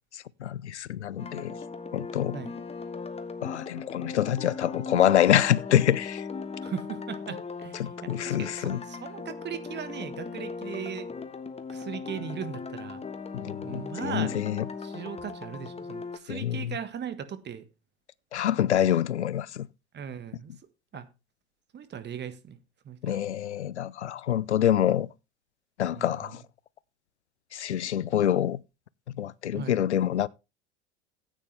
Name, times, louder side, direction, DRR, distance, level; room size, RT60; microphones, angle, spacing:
voice 1, 0.1-1.5 1.9-2.4 3.4-6.3 7.8-8.8 13.3-14.7 16.3-16.7 18.3-19.7 23.0-25.1 25.8-26.4 27.5-28.6 29.1-30.3, left 11 dB, 85° left, 0.5 m, -26 dB
sound 1, 1.2-16.2, left 4 dB, 20° left, 1.3 m, -38 dB
voice 2, 6.6-11.1 11.7-13.0 13.6-14.4 14.8-17.6 19.9-20.5 20.9-21.1 21.7-22.6 22.8-23.2 25.9-26.4 29.5-29.8, right 8 dB, 30° right, 1.6 m, -38 dB
14.0 x 9.0 x 3.4 m
figure-of-eight pair, 75°, 33 cm